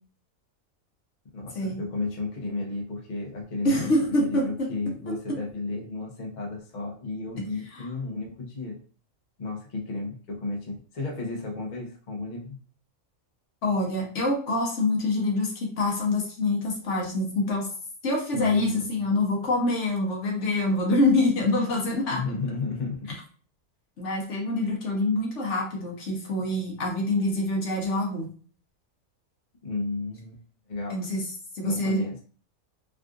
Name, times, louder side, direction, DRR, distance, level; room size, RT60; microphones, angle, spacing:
voice 1, 1.3-3.9 4.2-8.8 9.4-12.6 18.3-19.0 22.1-23.1 29.6-30.4 30.7-31.0 31.6-32.2, left 3 dB, 40° left, -1 dB, 0.7 m, -33 dB
voice 2, 3.6-4.7 5.1-5.2 7.7-7.9 13.6-17.7 18.0-22.2 24.0-28.3 30.9-31.2 31.5-32.0, left 2 dB, 60° left, -1 dB, 1.1 m, -26 dB
3.5 x 2.4 x 2.4 m, 0.41 s
omnidirectional pair, 1.4 m